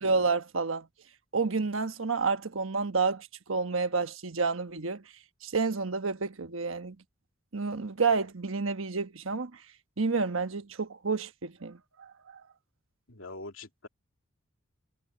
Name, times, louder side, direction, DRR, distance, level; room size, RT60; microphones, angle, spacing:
voice 1, 0.0-0.9 1.3-5.0 5.4-7.0 7.5-9.5 10.0-12.4, right 4 dB, 75° right, 1.2 m, -30 dB
voice 2, 13.1-13.9, left 2 dB, 80° left, 2.6 m, -43 dB
head